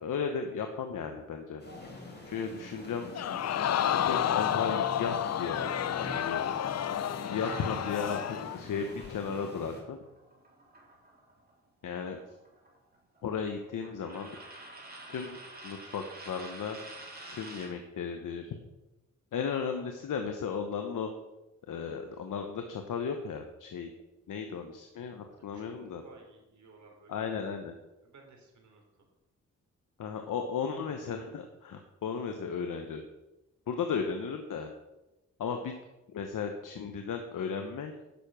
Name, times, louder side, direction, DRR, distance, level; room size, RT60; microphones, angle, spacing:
voice 1, 0.0-1.6 2.3-3.2 4.0-6.4 7.3-10.0 11.8-12.2 13.2-14.3 15.1-15.4 15.6-16.8 17.3-18.5 19.3-21.1 21.7-23.9 24.3-26.0 27.1-27.8 30.0-33.0 33.7-34.7 35.4-35.7 36.1-37.9, left 6 dB, 80° left, 5 dB, 1.1 m, -35 dB
sound 1, 1.6-9.8, left 1 dB, 30° left, 4.1 m, -45 dB
Crowd, 3.1-8.6 9.0-9.1, left 10 dB, 55° left, 0.5 m, -30 dB
sound 2, 7.4-11.5 11.8-17.8, right 2 dB, 30° right, 3.1 m, -49 dB
voice 2, 25.3-27.3 28.0-28.8, right 3 dB, 65° right, 1 dB, 3.3 m, -56 dB
10.5 x 6.8 x 6.0 m, 1.0 s
cardioid pair, 75°, 31 cm